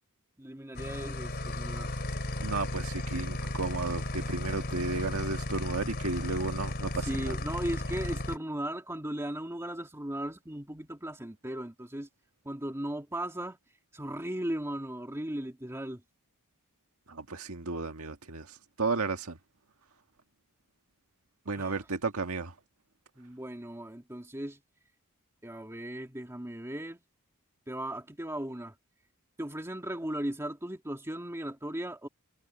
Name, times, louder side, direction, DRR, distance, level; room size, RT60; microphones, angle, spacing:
voice 1, 0.4-1.9 7.0-12.1 12.4-13.6 13.9-16.0 21.6-21.8 23.2-24.6 25.4-27.0 27.7-28.7 29.4-32.1, right 1 dB, 15° right, 2.2 m, -37 dB
sound 1, 0.7-8.4, left 1 dB, 50° left, 3.4 m, -34 dB
voice 2, 2.4-7.3 17.1-19.4 21.5-22.5, right 3 dB, 75° right, 1.7 m, -33 dB
head